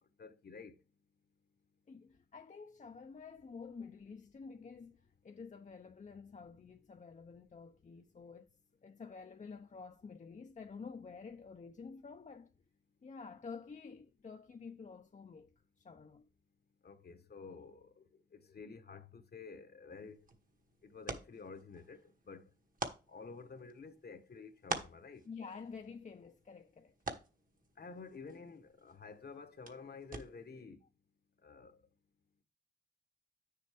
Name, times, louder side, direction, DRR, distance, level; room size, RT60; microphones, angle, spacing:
voice 1, 0.2-0.7 16.8-17.9 18.5-20.2 20.8-22.0 22.3-22.5 23.1-25.2 27.8-30.8 31.4-31.7, left 4 dB, 60° left, 1.1 m, -50 dB
voice 2, 1.9-5.0 5.2-8.5 8.8-12.5 13.0-16.3 25.3-26.9, left 5 dB, 40° left, 0.5 m, -50 dB
sound 1, 19.9-30.6, right 3 dB, 50° right, 1.3 m, -47 dB
9.2 x 6.8 x 3.4 m
wide cardioid pair, 90°, 18 cm